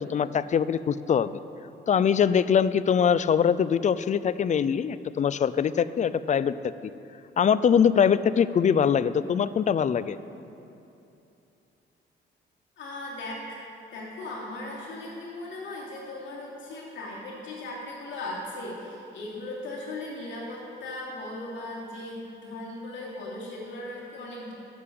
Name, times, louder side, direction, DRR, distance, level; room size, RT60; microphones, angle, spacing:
voice 1, 0.0-1.4 1.9-6.5 7.4-10.2, left 7 dB, 40° left, 15 dB, 0.4 m, -23 dB
voice 2, 12.8-13.6 13.9-24.5, left 2 dB, 70° left, -5 dB, 3.0 m, -38 dB
9.9 x 7.7 x 7.7 m, 2.8 s
cardioid pair, 90°, 20 cm